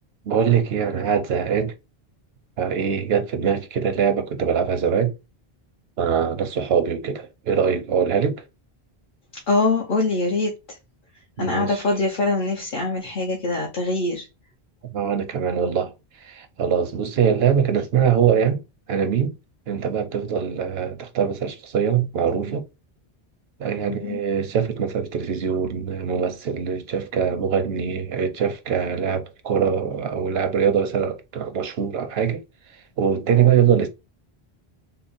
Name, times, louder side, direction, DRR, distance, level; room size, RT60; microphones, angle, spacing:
voice 1, 0.3-1.7 2.6-5.1 6.0-8.4 11.4-11.8 14.9-15.9 16.3-18.6 18.9-19.3 19.7-22.6 23.6-32.4 33.0-33.9, right 7 dB, 80° right, 0.9 m, -22 dB
voice 2, 9.5-10.8 11.4-14.3 23.8-24.2, left 2 dB, 55° left, 0.9 m, -23 dB
3.8 x 2.0 x 4.0 m
omnidirectional pair, 1.0 m